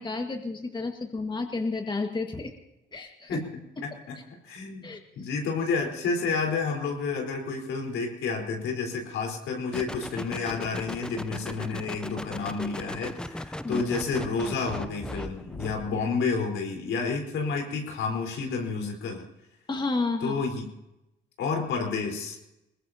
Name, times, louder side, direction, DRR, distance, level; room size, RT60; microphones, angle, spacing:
voice 1, 0.0-2.5 2.9-3.4 4.8-5.0 13.6-13.8 15.9-16.0 19.7-20.3, left 3 dB, 25° left, 4 dB, 1.7 m, -31 dB
voice 2, 3.8-4.2 4.4-19.2 20.2-20.7 21.4-22.4, left 4 dB, 85° left, 2 dB, 4.2 m, -30 dB
sound 1, 9.7-16.1, left 1 dB, 5° left, 0.6 m, -38 dB
21.5 x 20.0 x 2.8 m, 0.89 s
cardioid pair, 90°, 20 cm